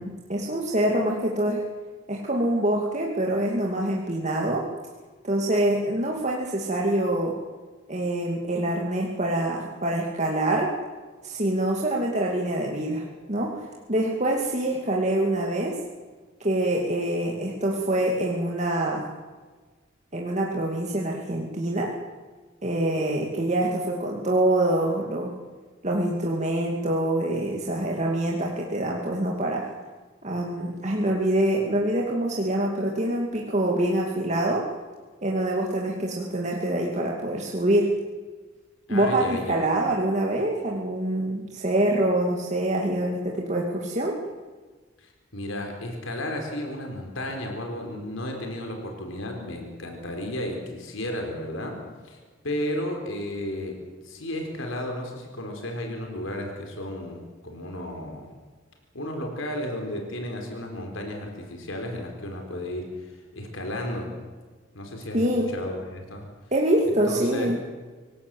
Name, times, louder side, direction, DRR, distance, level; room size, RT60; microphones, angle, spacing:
voice 1, 0.0-1.7 2.1-4.7 5.2-7.4 7.9-10.7 11.2-15.8 16.4-19.1 20.1-22.0 22.6-25.4 25.8-29.7 30.2-34.7 35.2-38.0 38.9-44.2 65.1-65.5 66.5-67.6, right 1 dB, 35° right, -1 dB, 2.5 m, -25 dB
voice 2, 38.9-39.6 45.0-52.2 52.4-53.8 54.0-58.3 58.9-64.1 64.7-66.3 66.8-67.5, left 1 dB, 80° left, 3 dB, 4.4 m, -33 dB
26.0 x 17.0 x 7.9 m, 1.4 s
head